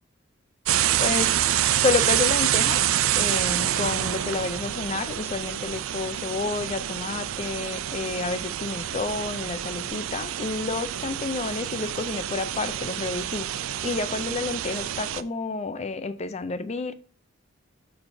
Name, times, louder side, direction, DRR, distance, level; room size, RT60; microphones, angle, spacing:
sound 1, 0.7-15.2, right 11 dB, 90° right, 0.4 m, -27 dB
voice 1, 1.0-1.4 1.7-2.8 3.1-13.5 13.8-16.9, left 4 dB, 30° left, 0.4 m, -30 dB
12.0 x 4.5 x 2.6 m
head